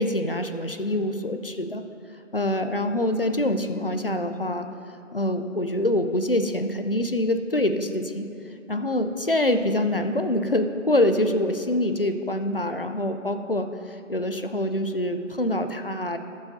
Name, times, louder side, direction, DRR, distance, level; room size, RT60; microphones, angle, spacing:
voice 1, 0.0-1.8 2.3-4.7 5.1-8.2 8.7-16.2, left 1 dB, 45° left, 7 dB, 0.5 m, -25 dB
18.5 x 7.2 x 2.6 m, 2.8 s
figure-of-eight pair, 175°, 40 cm